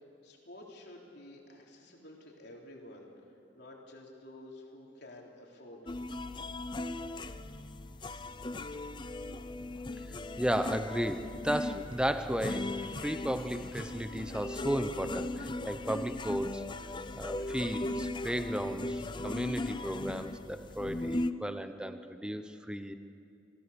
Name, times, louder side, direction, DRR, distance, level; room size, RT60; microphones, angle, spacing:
voice 1, 0.2-3.1 3.5-6.0, left 1 dB, 65° left, -1 dB, 3.5 m, -51 dB
sound 1, 5.9-21.3, left 2 dB, 25° left, 0.6 m, -38 dB
voice 2, 10.4-16.6 17.1-23.0, equal, 5° right, 9 dB, 0.8 m, -34 dB
26.5 x 17.0 x 7.0 m, 2.5 s
head